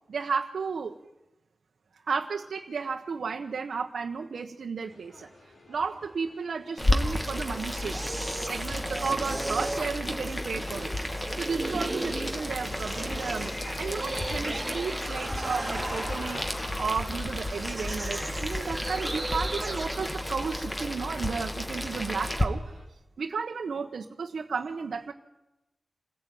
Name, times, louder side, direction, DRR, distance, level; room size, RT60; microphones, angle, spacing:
voice 1, 0.1-1.0 2.1-5.3 5.7-8.0 8.5-10.9 11.3-16.5 16.8-22.8 23.2-25.1, right 5 dB, 80° right, 1 dB, 1.3 m, -33 dB
sound 1, 4.9-22.8, left 1 dB, 65° left, 4.9 m, -47 dB
Boiling, 6.8-22.4, left 1 dB, 15° left, 2.5 m, -32 dB
sound 2, 6.9-21.0, right 1 dB, 20° right, 3.1 m, -37 dB
27.0 x 15.5 x 9.5 m, 0.96 s
cardioid pair, 65°, 0 cm